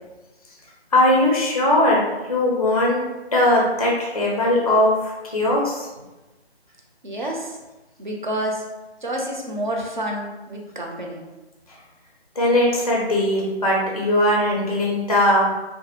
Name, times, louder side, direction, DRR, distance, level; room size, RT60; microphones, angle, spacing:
voice 1, 0.9-5.9 12.4-15.5, left 1 dB, 35° left, -3 dB, 0.4 m, -19 dB
voice 2, 7.0-7.6 8.0-8.6 9.0-11.2, right 1 dB, 45° right, 0 dB, 0.4 m, -28 dB
2.4 x 2.3 x 2.7 m, 1.1 s
figure-of-eight pair, 170°, 33 cm